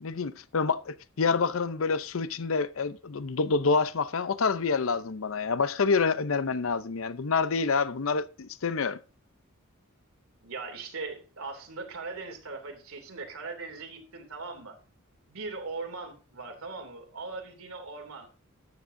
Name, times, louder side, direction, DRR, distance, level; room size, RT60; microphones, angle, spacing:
voice 1, 0.0-9.0, left 4 dB, 70° left, 0.6 m, -27 dB
voice 2, 10.4-14.8 15.3-18.3, right 3 dB, 90° right, 2.8 m, -39 dB
13.5 x 10.0 x 2.6 m
head